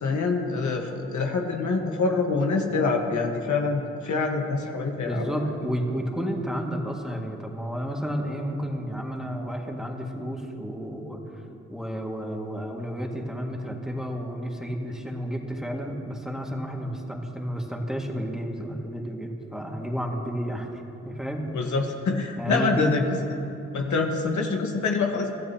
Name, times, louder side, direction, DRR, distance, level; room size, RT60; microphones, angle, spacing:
voice 1, 0.0-5.5 21.5-23.0 23.7-25.3, left 4 dB, 75° left, 2 dB, 1.5 m, -26 dB
voice 2, 5.1-11.2 11.7-20.7 21.1-21.5 22.4-23.0, equal, ahead, 0 dB, 2.0 m, -31 dB
23.5 x 14.0 x 2.9 m, 2.8 s
cardioid pair, 60°, 29 cm